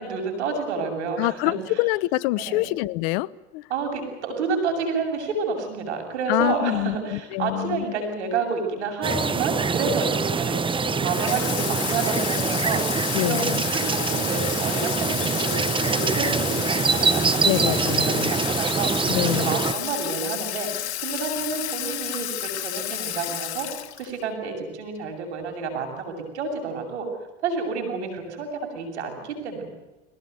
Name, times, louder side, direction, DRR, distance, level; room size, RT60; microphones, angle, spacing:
voice 1, 0.0-1.8 2.4-2.7 3.7-18.9 19.3-20.7 21.0-23.7 24.0-27.1 27.4-28.5 28.7-29.7, right 4 dB, 85° right, 4 dB, 7.7 m, -29 dB
voice 2, 1.2-3.3 3.5-3.6 6.3-7.8 13.1-13.6 17.4-18.3 19.1-19.6, left 20 dB, 65° left, 20 dB, 0.9 m, -25 dB
sound 1, 9.0-19.7, right 5 dB, 15° right, 1.0 m, -24 dB
Water tap faucet / Sink (filling or washing), 11.1-24.2, left 13 dB, 85° left, 1.8 m, -31 dB
23.0 x 19.0 x 9.5 m, 1.1 s
supercardioid pair, 105°, 33 cm